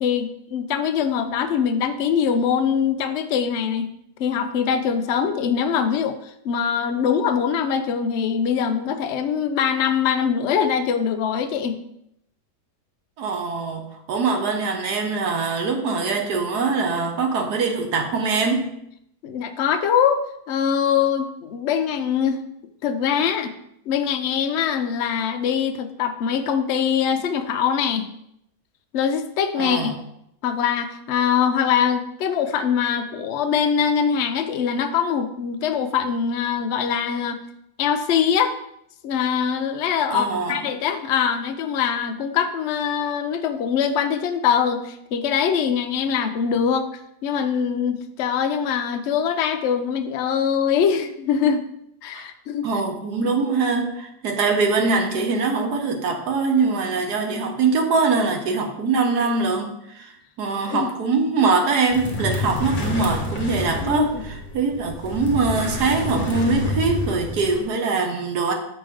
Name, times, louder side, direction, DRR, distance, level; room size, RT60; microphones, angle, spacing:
voice 1, 0.0-3.9 4.2-11.8 19.2-22.4 22.8-23.5 23.9-28.1 28.9-29.9 30.4-37.4 37.8-38.6 39.0-46.9 47.2-51.6 52.0-52.7 53.2-53.3 60.7-60.9 63.8-64.2, left 7 dB, 70° left, 8 dB, 0.6 m, -23 dB
voice 2, 13.2-18.7 29.6-29.9 40.1-40.7 52.1-52.3 52.6-64.1 64.5-68.5, right 4 dB, 75° right, 4 dB, 1.5 m, -23 dB
sound 1, 61.9-67.6, left 2 dB, 35° left, 0.9 m, -28 dB
6.7 x 5.1 x 3.6 m, 0.77 s
omnidirectional pair, 1.8 m